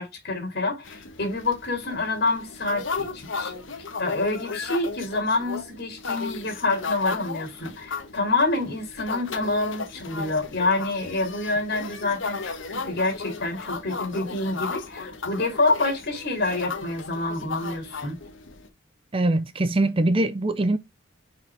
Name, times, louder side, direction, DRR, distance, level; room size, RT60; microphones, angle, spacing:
voice 1, 0.0-3.5 4.0-18.2, left 2 dB, 55° left, 2.7 m, -27 dB
sound 1, 0.8-18.7, left 4 dB, 75° left, 1.4 m, -35 dB
voice 2, 19.1-20.8, right 2 dB, 25° right, 0.5 m, -22 dB
6.5 x 5.1 x 3.4 m
head